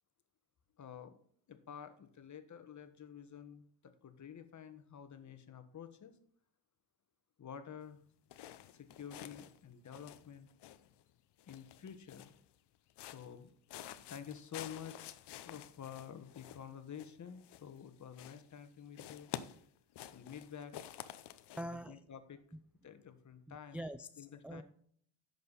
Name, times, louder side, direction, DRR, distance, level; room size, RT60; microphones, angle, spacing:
voice 1, 0.8-1.1 1.5-6.1 7.4-8.0 8.7-10.5 11.5-12.3 13.0-13.5 14.1-15.2 15.4-19.3 20.1-20.7 21.9-22.4 22.8-23.8 24.2-24.6, left 8 dB, 40° left, 1.4 m, -50 dB
sound 1, 8.3-9.6 9.8-11.0 11.4-12.5 12.9-13.4 13.7-17.9 18.1-18.7 18.9-21.6, left 12 dB, 60° left, 0.8 m, -50 dB
voice 2, 21.6-22.0 23.5-24.6, equal, 5° right, 0.3 m, -44 dB
10.5 x 6.8 x 4.1 m
cardioid pair, 90°, 46 cm